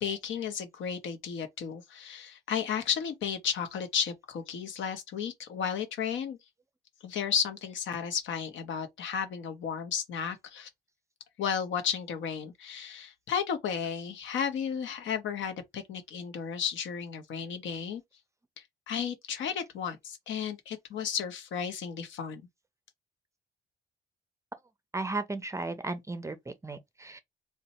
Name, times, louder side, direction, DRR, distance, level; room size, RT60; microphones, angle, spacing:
voice 1, 0.0-6.4 7.0-10.7 11.4-18.0 18.9-22.4, left 7 dB, 70° left, 0.8 m, -33 dB
voice 2, 24.9-27.2, right 3 dB, 15° right, 0.5 m, -35 dB
2.6 x 2.2 x 4.0 m
cardioid pair, 90°, 20 cm